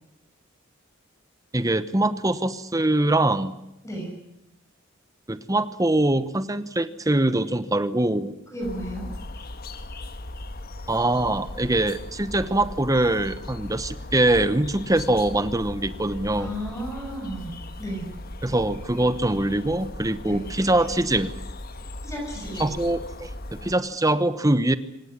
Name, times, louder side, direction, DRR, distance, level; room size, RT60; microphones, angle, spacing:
voice 1, 1.5-3.6 5.3-8.3 10.9-16.5 18.4-21.3 22.6-24.8, right 1 dB, 15° right, 13 dB, 1.0 m, -23 dB
voice 2, 8.5-9.1 16.4-18.1 20.3-20.4 22.0-22.7, equal, 15° left, 0 dB, 7.1 m, -33 dB
sound 1, 8.6-23.7, left 1 dB, 45° left, 1.5 m, -38 dB
25.0 x 18.5 x 9.6 m, 0.86 s
head